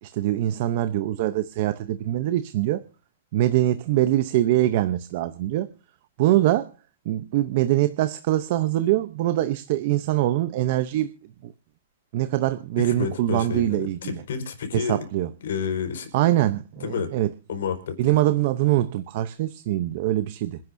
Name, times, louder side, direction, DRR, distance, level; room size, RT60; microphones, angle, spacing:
voice 1, 0.0-2.8 3.3-5.7 6.2-6.7 7.1-11.1 12.1-14.2 14.7-15.3 16.1-17.3 18.0-20.6, right 14 dB, 35° right, 0.7 m, -23 dB
voice 2, 12.8-15.1 15.4-16.1 16.8-17.1 17.5-18.0, left 6 dB, 65° left, 4.8 m, -30 dB
27.0 x 10.5 x 2.7 m
hypercardioid pair, 175°, 0 cm